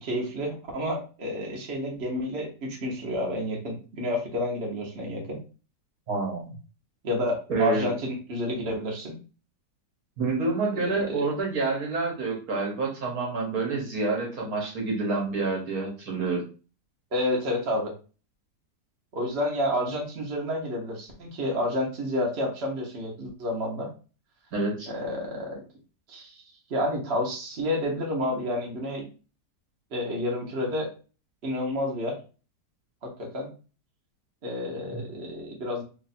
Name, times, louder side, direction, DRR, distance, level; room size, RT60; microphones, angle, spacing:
voice 1, 0.0-5.4 7.0-9.2 10.7-11.2 17.1-17.9 19.1-23.9 24.9-25.6 26.1-26.3 26.7-29.1 29.9-30.9 31.4-32.2 33.0-33.5 34.4-35.8, left 1 dB, 45° right, -1 dB, 1.1 m, -30 dB
voice 2, 6.1-6.6 7.5-7.9 10.2-16.4 24.5-24.9 34.9-35.0, right 3 dB, 60° right, 0 dB, 1.4 m, -28 dB
3.2 x 2.5 x 4.2 m, 0.35 s
omnidirectional pair, 1.9 m